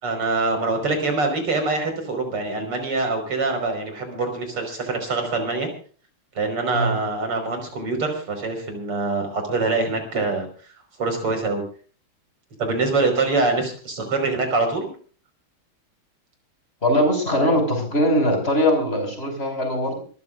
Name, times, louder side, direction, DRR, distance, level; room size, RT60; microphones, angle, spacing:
voice 1, 0.0-5.7 6.4-10.5 11.0-11.6 12.6-14.9, right 3 dB, 90° right, 5 dB, 5.9 m, -24 dB
voice 2, 16.8-20.0, equal, 25° left, 4 dB, 6.1 m, -21 dB
26.0 x 14.5 x 2.5 m, 0.42 s
omnidirectional pair, 2.4 m